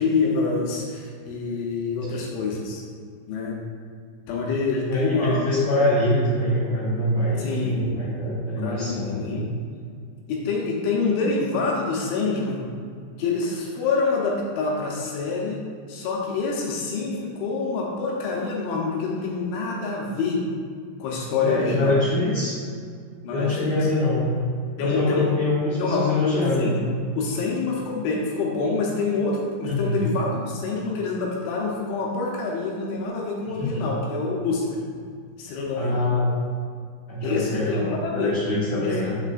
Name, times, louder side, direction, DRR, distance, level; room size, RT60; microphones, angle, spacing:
voice 1, 0.0-2.8 3.3-3.6 4.3-5.4 7.4-7.9 8.6-9.5 10.3-12.7 13.2-15.6 15.9-20.5 21.0-22.0 23.2-23.7 24.8-25.3 25.7-26.3 26.6-26.8 27.2-34.8 35.4-36.0 37.2-38.4 38.8-39.0, left 4 dB, 80° left, -2 dB, 3.0 m, -26 dB
voice 2, 4.8-9.4 21.4-22.6 23.3-24.3 24.8-27.1 29.6-30.0 33.6-33.9 35.8-36.3 37.1-39.2, left 1 dB, 60° left, -12 dB, 2.1 m, -24 dB
7.1 x 6.6 x 2.4 m, 2.1 s
omnidirectional pair, 5.6 m